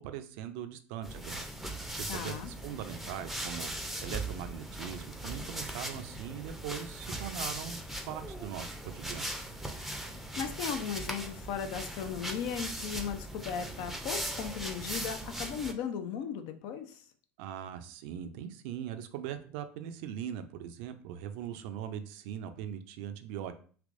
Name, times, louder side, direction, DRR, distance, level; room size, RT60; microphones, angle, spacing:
voice 1, 0.0-1.4 1.7-7.8 8.1-9.3 17.4-23.5, right 9 dB, 65° right, 9 dB, 0.4 m, -41 dB
sound 1, 1.0-15.7, right 1 dB, ahead, 0.5 m, -39 dB
voice 2, 2.1-2.5 10.4-17.0, left 7 dB, 60° left, 8 dB, 0.5 m, -37 dB
3.3 x 2.9 x 2.5 m, 0.43 s
hypercardioid pair, 70°, 7 cm